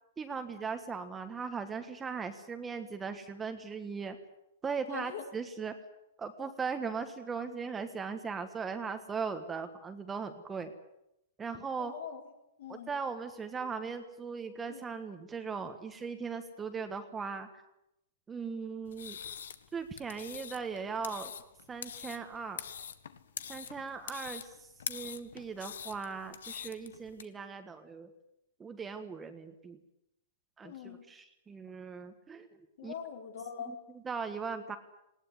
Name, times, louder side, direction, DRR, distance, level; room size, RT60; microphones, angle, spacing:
voice 1, 0.2-4.2 4.6-5.7 6.2-10.7 11.4-11.9 12.7-17.6 18.3-19.2 19.7-21.3 21.7-22.7 23.5-28.1 28.6-29.8 30.6-32.9 33.7-33.8 34.0-34.8, right 5 dB, 10° right, 8 dB, 1.5 m, -39 dB
voice 2, 4.9-5.2 11.8-12.3 12.6-12.9 14.7-14.8 30.6-31.0 32.8-33.7, left 8 dB, 60° left, 3 dB, 4.8 m, -42 dB
sound 1, 18.9-27.2, left 8 dB, 85° left, 1.7 m, -44 dB
20.0 x 18.0 x 9.6 m, 0.84 s
hypercardioid pair, 160°, 0 cm